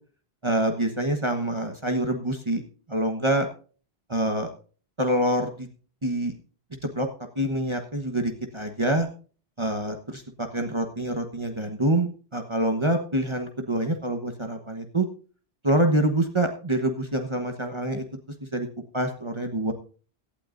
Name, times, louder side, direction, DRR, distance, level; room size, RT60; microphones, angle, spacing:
voice 1, 0.4-2.6 2.9-3.5 4.1-4.5 5.0-5.7 6.0-6.3 6.9-7.1 7.4-9.1 9.6-15.1 15.6-18.0 18.5-18.7 18.9-19.7, right 1 dB, 30° right, 5 dB, 1.2 m, -26 dB
17.5 x 12.0 x 2.6 m, 0.39 s
omnidirectional pair, 1.0 m